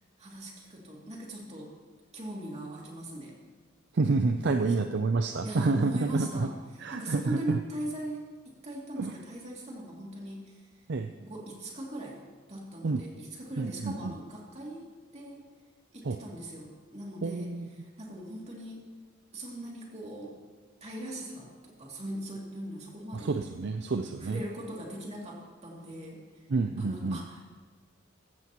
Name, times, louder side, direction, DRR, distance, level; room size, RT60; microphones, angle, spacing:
voice 1, 0.2-1.7 2.1-3.4 4.6-4.7 5.4-10.6 11.2-12.2 12.5-15.4 15.9-18.8 19.3-20.4 20.8-23.3 24.2-26.5 26.8-27.5, right 1 dB, 35° right, -3 dB, 2.6 m, -40 dB
voice 2, 3.9-6.5 6.8-7.6 9.0-9.1 10.9-11.1 12.8-13.0 13.6-14.1 16.0-16.2 17.2-17.7 23.1-24.4 26.5-27.2, right 3 dB, 55° right, 7 dB, 0.5 m, -28 dB
15.0 x 14.0 x 3.0 m, 1.5 s
head